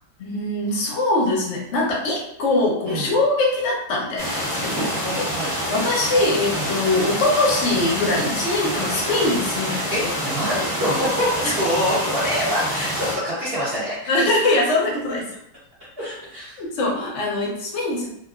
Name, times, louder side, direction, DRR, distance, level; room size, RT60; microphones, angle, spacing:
voice 1, 0.2-4.9 5.1-5.3 5.7-9.9 10.5-10.7 11.4-11.5 14.1-15.3 16.6-18.1, left 2 dB, 60° left, -2 dB, 0.7 m, -22 dB
voice 2, 2.8-3.2 4.8-5.5 6.5-6.7 8.1-8.3 9.9-14.3 16.0-16.6, equal, 65° right, -8 dB, 0.5 m, -26 dB
sound 1, 4.2-13.1, equal, 15° right, 0.4 m, -27 dB
2.9 x 2.4 x 2.3 m, 0.74 s
omnidirectional pair, 2.0 m